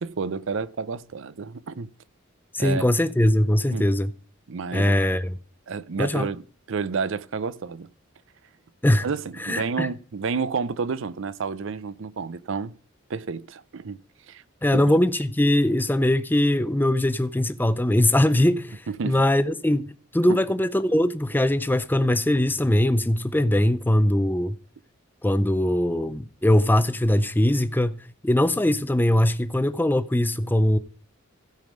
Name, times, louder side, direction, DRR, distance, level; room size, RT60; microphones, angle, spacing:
voice 1, 0.0-1.9 2.6-2.9 3.7-3.9 4.5-5.0 5.7-6.4 6.7-7.9 9.0-12.7 13.1-14.0 14.3-14.4 14.7-14.8 18.9-19.2 20.3-20.4, right 5 dB, 65° right, 0.5 m, -30 dB
voice 2, 2.5-4.1 4.7-5.4 6.0-6.3 8.8-9.1 9.4-9.9 14.6-24.6 25.2-28.0 28.2-30.8, left 1 dB, 10° left, 0.5 m, -21 dB
16.0 x 5.3 x 5.2 m
head